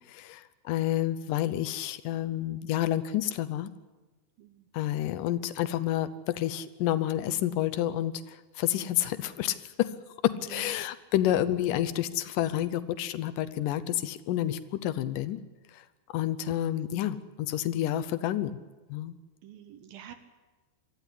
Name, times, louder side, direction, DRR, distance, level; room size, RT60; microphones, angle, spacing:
voice 1, 0.1-3.7 4.7-9.9 10.2-15.4 15.7-15.9 16.1-18.5 18.9-19.2, left 12 dB, 75° left, 13 dB, 2.1 m, -29 dB
voice 2, 10.5-10.8 19.4-20.1, right 10 dB, 70° right, 9 dB, 2.7 m, -47 dB
23.5 x 14.5 x 9.9 m, 1.3 s
omnidirectional pair, 4.5 m